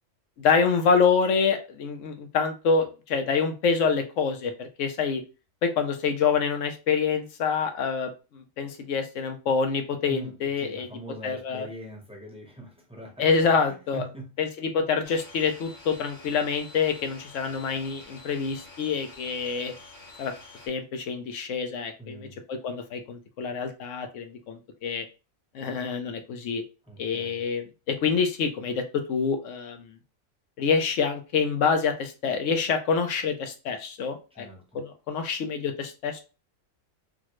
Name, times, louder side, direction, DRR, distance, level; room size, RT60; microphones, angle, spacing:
voice 1, 0.4-5.2 5.6-10.9 11.2-11.7 13.2-14.0 14.4-19.7 20.2-20.3 20.7-25.1 25.5-26.6 27.0-29.9 30.6-34.5 34.7-36.2, left 5 dB, 75° left, 1.0 m, -26 dB
voice 2, 10.1-13.3 13.6-14.5 22.0-22.4 26.8-27.4 34.3-34.7, right 1 dB, 5° right, 0.7 m, -42 dB
sound 1, 15.0-20.7, left 3 dB, 40° left, 0.9 m, -48 dB
4.0 x 2.1 x 3.0 m
omnidirectional pair, 1.4 m